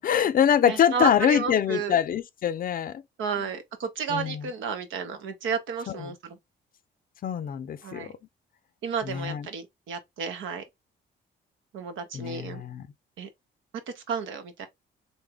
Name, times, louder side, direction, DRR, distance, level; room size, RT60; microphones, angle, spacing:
voice 1, 0.0-3.0 4.1-4.5 5.9-6.1 7.2-8.1 9.0-9.5 12.1-12.9, left 9 dB, 45° left, 0.4 m, -24 dB
voice 2, 0.7-2.0 3.2-6.4 7.8-8.1 8.8-10.6 11.7-12.6 13.2-13.3 14.0-14.7, right 5 dB, 75° right, 0.9 m, -32 dB
3.4 x 2.1 x 3.4 m
cardioid pair, 90°, 20 cm